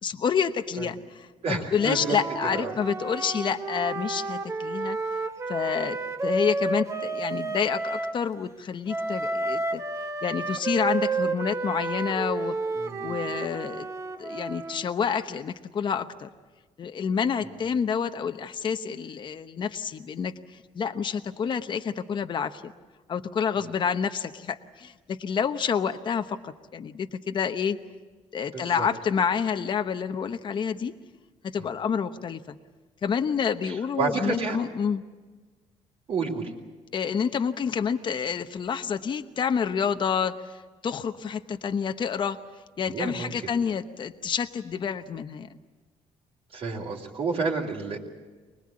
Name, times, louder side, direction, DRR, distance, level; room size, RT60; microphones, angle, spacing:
voice 1, 0.0-5.0 5.5-9.8 10.2-12.6 13.0-13.9 14.2-16.3 16.8-22.7 23.1-27.8 28.3-30.9 31.5-32.6 33.0-35.0 36.9-40.5 40.8-42.4 42.8-45.5, left 7 dB, 40° left, 7 dB, 0.9 m, -28 dB
voice 2, 1.4-2.2 2.5-2.7 12.7-13.2 28.5-28.9 31.6-31.7 33.6-34.6 36.1-36.5 42.9-43.3 46.5-48.0, right 4 dB, 55° right, -4 dB, 3.5 m, -30 dB
Wind instrument woodwind instrument, 1.8-8.2 8.9-14.9, right 3 dB, 25° right, 1.1 m, -31 dB
24.5 x 20.5 x 8.7 m, 1.3 s
cardioid pair, 130°, 12 cm